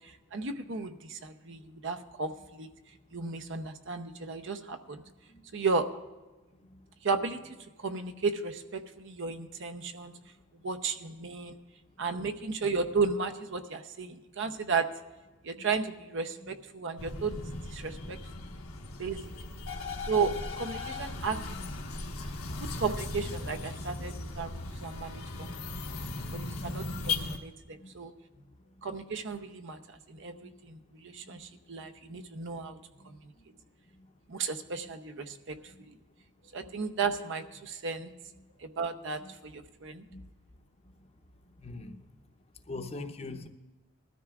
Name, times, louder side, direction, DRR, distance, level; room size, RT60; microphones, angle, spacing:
voice 1, 0.0-2.7 3.1-5.0 5.5-5.9 7.0-7.4 7.8-10.1 10.6-11.6 12.0-14.9 15.4-18.2 19.0-19.2 20.1-21.7 22.6-25.5 26.3-28.1 28.8-29.8 30.1-32.8 33.0-33.2 34.3-35.6 36.5-38.1 38.6-40.0, right 4 dB, 60° right, 8 dB, 0.7 m, -34 dB
sound 1, 17.0-27.4, left 3 dB, 85° left, 1.3 m, -37 dB
voice 2, 41.6-42.0 42.7-43.5, left 2 dB, 30° left, 6 dB, 0.7 m, -41 dB
20.0 x 13.0 x 2.4 m, 1.2 s
head